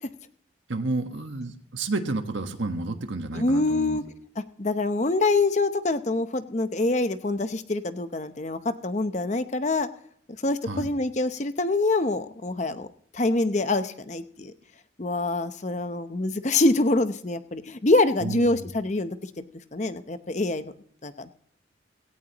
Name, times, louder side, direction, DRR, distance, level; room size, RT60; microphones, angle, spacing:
voice 1, 0.7-4.0 10.6-10.9 18.2-18.7, right 2 dB, 80° right, 6 dB, 1.4 m, -31 dB
voice 2, 3.3-4.0 4.6-9.9 10.4-12.9 13.1-14.5 15.0-19.4 19.7-20.7 21.0-21.3, left 2 dB, 35° left, 10 dB, 0.8 m, -25 dB
17.5 x 15.5 x 3.0 m, 0.64 s
head